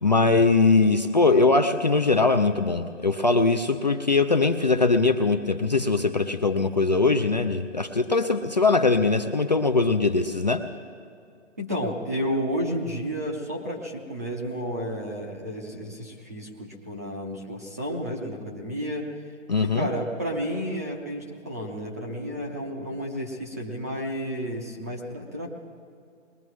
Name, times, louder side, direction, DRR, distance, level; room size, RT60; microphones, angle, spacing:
voice 1, 0.0-10.6 19.5-19.9, left 3 dB, 35° left, 6 dB, 0.5 m, -21 dB
voice 2, 11.6-19.1 19.6-25.6, equal, 15° right, -1 dB, 0.6 m, -31 dB
21.5 x 19.5 x 3.1 m, 2.4 s
hypercardioid pair, 160°, 38 cm